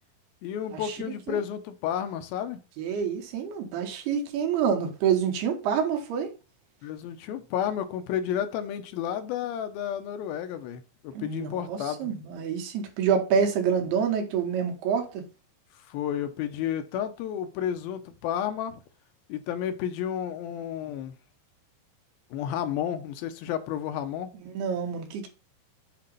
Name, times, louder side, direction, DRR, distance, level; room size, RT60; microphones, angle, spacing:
voice 1, 0.4-2.6 6.8-12.1 15.9-18.8 19.3-21.1 22.3-24.3, left 9 dB, 80° left, 2.4 m, -31 dB
voice 2, 2.8-6.3 11.1-15.2 24.5-25.3, right 7 dB, 90° right, 3.2 m, -27 dB
7.6 x 2.9 x 5.3 m
omnidirectional pair, 4.4 m